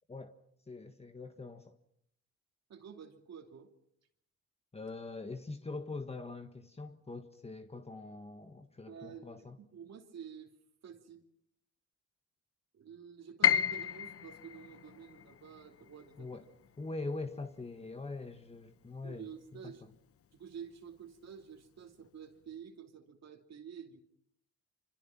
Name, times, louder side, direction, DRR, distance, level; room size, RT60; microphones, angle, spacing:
voice 1, 0.7-1.8 4.7-9.6 16.2-16.4 16.8-19.3 19.6-19.7, left 3 dB, 20° left, 1.5 m, -43 dB
voice 2, 2.7-3.7 8.9-10.5 10.8-11.2 12.7-16.3 19.0-19.8 20.3-24.0, right 7 dB, 60° right, 2.8 m, -49 dB
Piano, 13.4-19.4 19.7-20.8 21.2-21.3 22.1-22.4, left 8 dB, 50° left, 0.9 m, -35 dB
26.5 x 25.5 x 5.9 m
cardioid pair, 90°, 30 cm